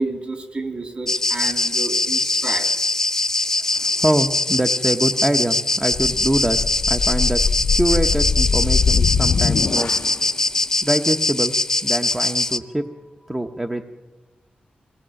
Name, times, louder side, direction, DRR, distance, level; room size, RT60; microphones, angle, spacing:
voice 1, 0.0-2.9, right 2 dB, 40° right, 6 dB, 3.3 m, -30 dB
sound 1, 1.1-12.6, left 2 dB, 15° left, 0.9 m, -22 dB
voice 2, 3.6-6.6 6.9-7.5 7.8-9.9 10.8-11.6 11.8-12.9 13.3-13.8, right 1 dB, 15° right, 6 dB, 0.9 m, -24 dB
sound 2, 5.9-10.2, left 5 dB, 60° left, 0.6 m, -22 dB
24.0 x 18.0 x 7.7 m, 1.2 s
wide cardioid pair, 115°, 3 cm